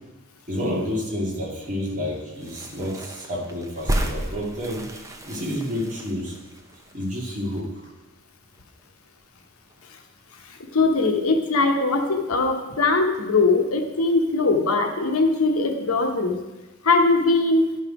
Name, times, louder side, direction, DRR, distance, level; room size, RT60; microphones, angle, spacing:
voice 1, 0.5-4.9 5.3-6.4 6.9-7.9, left 1 dB, 35° right, -3 dB, 2.0 m, -29 dB
sound 1, 2.3-7.9 8.2-8.3 8.5-9.4 9.7-9.9, right 1 dB, 15° right, 0.7 m, -33 dB
voice 2, 10.5-16.4 16.8-17.6, left 3 dB, 85° left, 5 dB, 1.0 m, -21 dB
10.5 x 5.6 x 4.8 m, 1.1 s
head